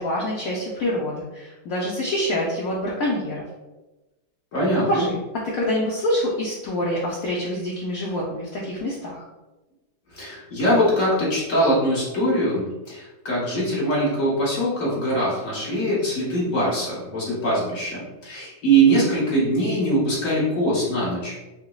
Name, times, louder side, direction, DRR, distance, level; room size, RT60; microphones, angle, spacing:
voice 1, 0.0-3.4 4.9-5.1 5.5-9.2, left 1 dB, 75° left, -4 dB, 0.8 m, -26 dB
voice 2, 4.5-5.1 10.1-21.4, right 1 dB, 50° left, -7 dB, 1.1 m, -22 dB
5.8 x 2.0 x 2.3 m, 1.1 s
omnidirectional pair, 2.1 m